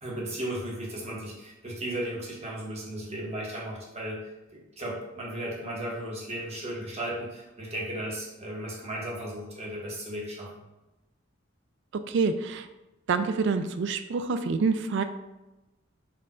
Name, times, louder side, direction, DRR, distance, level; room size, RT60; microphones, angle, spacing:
voice 1, 0.0-4.2 4.5-10.6, right 1 dB, 35° right, -3 dB, 1.0 m, -35 dB
voice 2, 12.1-12.6 13.1-15.0, right 4 dB, 65° right, 10 dB, 0.4 m, -26 dB
4.4 x 2.4 x 4.2 m, 1.0 s
head